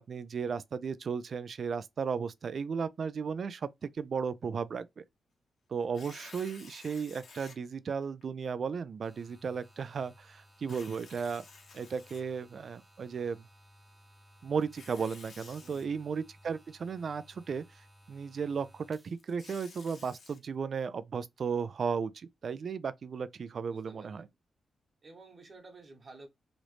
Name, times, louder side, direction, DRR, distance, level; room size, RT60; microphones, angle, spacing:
voice 1, 0.0-5.0 5.7-11.4 11.7-13.4 14.4-24.3, right 6 dB, 55° right, 0.3 m, -35 dB
Tearing, 5.8-7.6 8.2-8.3 10.6-12.7 14.6-15.8 19.0-20.4, left 4 dB, 65° left, 1.1 m, -53 dB
sound 1, 9.0-19.5, equal, 15° right, 0.8 m, -60 dB
voice 2, 15.6-16.1 23.7-24.3 25.0-26.3, right 3 dB, 40° right, 1.2 m, -53 dB
3.0 x 2.6 x 3.1 m
cardioid pair, 105°, 0 cm